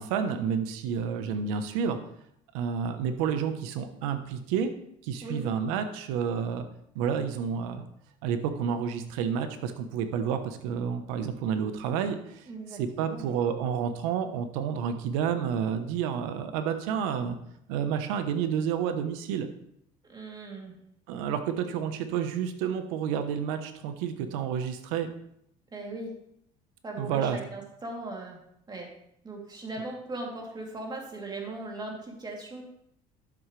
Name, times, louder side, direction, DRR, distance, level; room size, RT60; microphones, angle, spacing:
voice 1, 0.0-2.0 2.5-4.7 5.0-6.7 6.9-7.8 8.2-12.4 12.8-17.4 17.7-19.5 21.1-25.1 27.0-27.4, right 7 dB, 90° right, 9 dB, 1.1 m, -30 dB
voice 2, 12.5-13.3 20.1-20.8 25.7-26.2 26.8-28.4 28.7-28.9 29.2-32.6, right 2 dB, 25° right, -1 dB, 3.1 m, -38 dB
11.0 x 7.8 x 3.3 m, 0.73 s
supercardioid pair, 100°, 17 cm